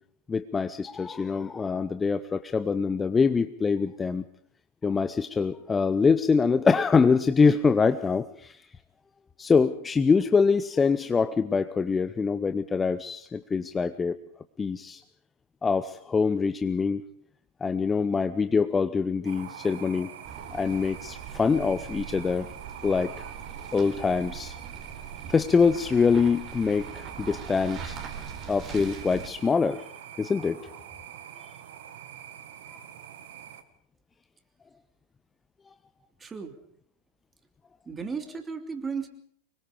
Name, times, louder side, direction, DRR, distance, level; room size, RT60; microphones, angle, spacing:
voice 1, 0.3-4.2 4.8-8.6 9.4-14.2 14.6-15.0 15.6-17.0 17.6-20.1 20.5-22.5 22.8-23.3 23.7-24.6 25.3-28.0 28.5-29.8 30.2-30.7 32.7-32.8, left 5 dB, 15° left, 12 dB, 0.8 m, -24 dB
sound 1, 19.2-33.6, right 9 dB, 55° right, 1.9 m, -44 dB
sound 2, 20.2-29.3, right 7 dB, 35° right, 4.3 m, -42 dB
voice 2, 36.2-36.6 37.8-39.1, right 5 dB, 15° right, 6 dB, 3.1 m, -34 dB
25.0 x 22.0 x 5.2 m, 0.63 s
figure-of-eight pair, 90°, 0 cm